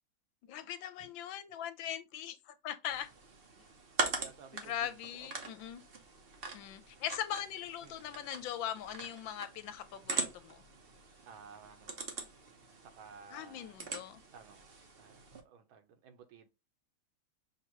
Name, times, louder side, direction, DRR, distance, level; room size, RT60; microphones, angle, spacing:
voice 1, 0.5-3.1 4.6-5.8 6.5-10.6 13.3-14.2, left 10 dB, 75° left, 1.3 m, -40 dB
sound 1, 2.9-15.4, right 3 dB, 55° right, 0.6 m, -42 dB
voice 2, 4.2-5.5 7.8-8.2 11.3-12.2 12.8-14.7 15.0-16.5, right 6 dB, 80° right, 1.6 m, -56 dB
6.1 x 2.9 x 3.0 m
omnidirectional pair, 2.2 m